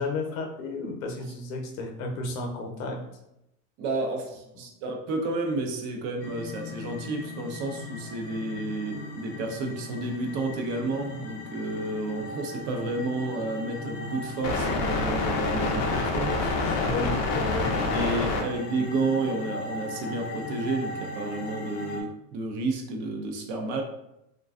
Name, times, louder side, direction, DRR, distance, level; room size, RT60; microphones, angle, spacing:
voice 1, 0.0-3.0 16.5-18.0, left 2 dB, 85° left, 2 dB, 0.7 m, -33 dB
voice 2, 3.8-16.5 17.1-17.2 17.5-23.8, right 2 dB, 50° right, 3 dB, 0.5 m, -31 dB
sound 1, 6.2-22.0, left 3 dB, 45° left, 0.4 m, -31 dB
2.4 x 2.2 x 2.3 m, 0.83 s
supercardioid pair, 145°, 39 cm